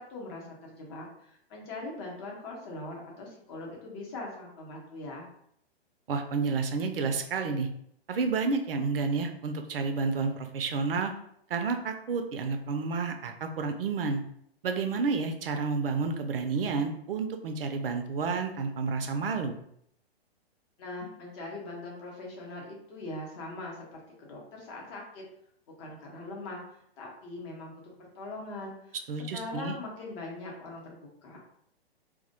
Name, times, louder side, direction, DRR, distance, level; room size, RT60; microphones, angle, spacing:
voice 1, 0.1-5.3 20.8-25.2 25.8-26.6 27.0-29.0 29.3-31.4, left 2 dB, 25° left, -1 dB, 0.6 m, -41 dB
voice 2, 6.1-7.7 8.1-11.1 11.5-14.2 14.6-19.6 29.1-29.8, right 4 dB, 65° right, 5 dB, 0.5 m, -30 dB
2.2 x 2.1 x 2.7 m, 0.70 s
figure-of-eight pair, 115°, 32 cm